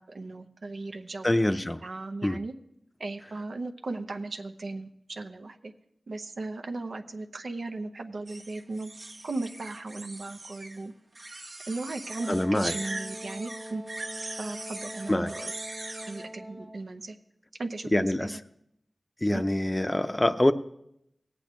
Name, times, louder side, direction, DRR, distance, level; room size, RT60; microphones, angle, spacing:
voice 1, 0.0-2.5 3.0-5.7 6.1-8.9 9.2-10.9 11.7-13.8 14.4-15.5 16.1-17.2 17.6-18.4 19.3-19.4, right 2 dB, 85° right, 5 dB, 0.7 m, -37 dB
voice 2, 1.2-1.8 2.2-2.4 12.3-12.7 15.1-15.3 17.9-18.4 19.2-20.5, left 1 dB, 25° left, 10 dB, 0.5 m, -25 dB
sound 1, 8.3-10.8 11.1-16.3, right 2 dB, 65° right, 1.1 m, -41 dB
Wind instrument woodwind instrument, 12.2-16.9, equal, 25° right, 1.6 m, -43 dB
18.5 x 8.4 x 3.1 m, 0.80 s
wide cardioid pair, 55°, 0 cm